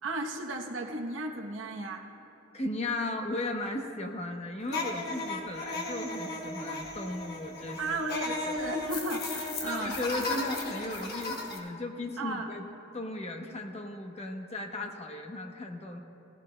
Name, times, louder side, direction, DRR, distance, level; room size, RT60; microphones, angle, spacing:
voice 1, 0.0-2.1 7.8-10.0 12.2-12.5, right 2 dB, 70° right, 3 dB, 0.9 m, -35 dB
voice 2, 2.5-7.8 8.4-8.5 9.7-12.7 12.9-16.0, left 2 dB, 35° left, 4 dB, 0.9 m, -36 dB
sound 1, 4.7-11.6, left 2 dB, 55° left, 1.1 m, -36 dB
18.0 x 15.5 x 2.2 m, 2.9 s
head